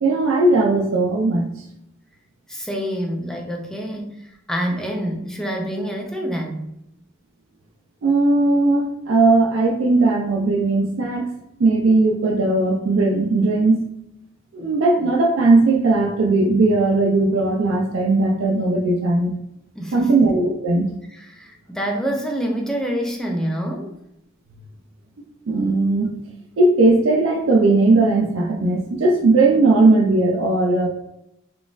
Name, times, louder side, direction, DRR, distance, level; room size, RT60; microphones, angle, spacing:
voice 1, 0.0-1.5 8.0-11.3 11.6-13.8 14.5-19.3 19.9-20.9 25.5-26.1 26.6-30.9, right 2 dB, 65° right, 1 dB, 0.4 m, -18 dB
voice 2, 2.5-6.7 19.8-20.2 21.1-23.9, equal, 5° left, 1 dB, 0.3 m, -27 dB
3.8 x 2.4 x 2.4 m, 0.83 s
head